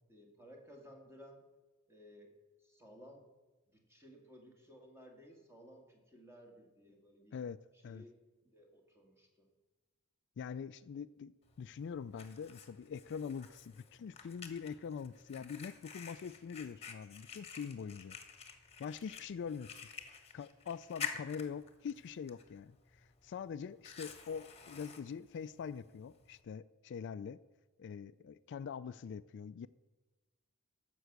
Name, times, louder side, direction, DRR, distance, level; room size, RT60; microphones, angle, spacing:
voice 1, 0.1-1.5 1.9-3.3 3.7-7.4 7.7-9.5, equal, 10° right, 1 dB, 2.0 m, -58 dB
voice 2, 10.4-11.3 11.6-18.2 18.8-19.8 20.3-27.4 27.8-29.7, left 6 dB, 55° left, 15 dB, 0.3 m, -44 dB
Fire, 11.4-26.4, left 7 dB, 30° left, 1.3 m, -50 dB
12.5 x 6.1 x 8.0 m, 1.2 s
head